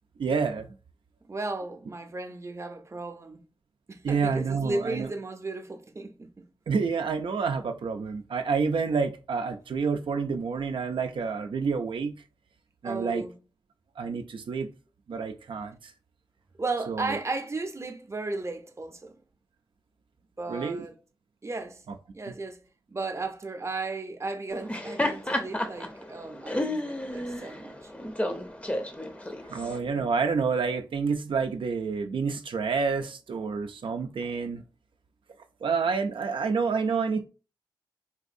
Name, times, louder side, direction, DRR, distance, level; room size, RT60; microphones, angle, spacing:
voice 1, 0.2-0.7 4.0-5.1 6.7-12.2 12.8-13.2 14.0-14.7 15.1-15.9 16.9-17.2 20.5-20.9 29.5-34.6 35.6-37.2, right 5 dB, 85° right, 0.4 m, -28 dB
voice 2, 1.3-3.4 3.9-6.4 12.8-13.3 16.6-19.2 20.4-21.0 21.4-21.8 22.1-22.6 22.9-27.9, right 3 dB, 35° right, 0.6 m, -35 dB
Laughter, 24.5-29.8, left 1 dB, 15° left, 0.6 m, -32 dB
3.9 x 2.6 x 2.5 m
wide cardioid pair, 75°, 8 cm